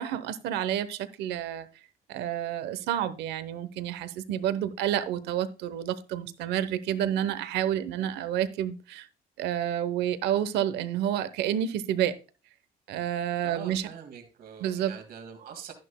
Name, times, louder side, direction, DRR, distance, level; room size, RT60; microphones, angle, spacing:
voice 1, 0.0-1.7 2.1-9.1 9.4-12.1 12.9-13.9 14.6-14.9, right 10 dB, 85° right, 0.9 m, -29 dB
voice 2, 13.4-15.7, right 8 dB, 65° right, 2.1 m, -44 dB
11.0 x 10.5 x 2.2 m
cardioid pair, 110°, 17 cm